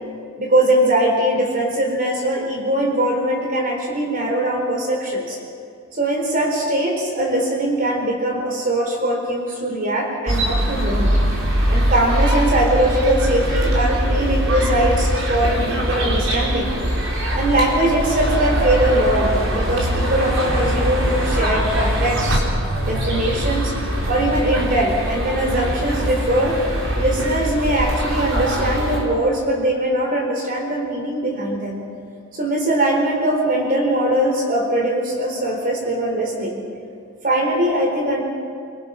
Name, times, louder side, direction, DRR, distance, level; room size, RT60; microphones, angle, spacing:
voice 1, 0.4-5.4 5.9-11.2 11.7-16.8 17.3-22.4 22.8-23.7 24.1-26.6 27.0-31.8 32.3-36.6 37.2-38.2, right 1 dB, 45° right, 0 dB, 4.1 m, -21 dB
sound 1, 10.3-29.0, equal, 80° right, 4.3 m, -22 dB
25.5 x 23.5 x 5.9 m, 2.3 s
head